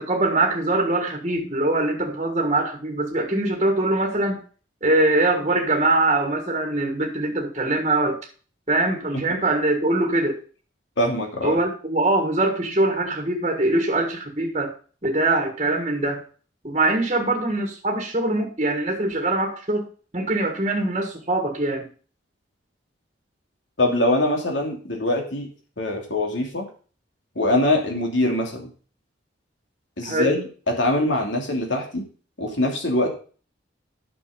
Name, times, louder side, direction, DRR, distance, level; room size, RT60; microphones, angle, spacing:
voice 1, 0.0-4.4 4.8-8.2 8.7-10.4 11.4-14.7 15.0-16.2 16.6-19.9 20.1-21.9 30.0-30.3, right 2 dB, 35° right, 2 dB, 1.6 m, -22 dB
voice 2, 11.0-11.6 23.8-25.5 25.8-26.7 27.3-28.7 30.0-32.0 32.4-33.1, left 1 dB, 70° left, 2 dB, 2.8 m, -23 dB
10.0 x 6.5 x 5.2 m, 0.39 s
head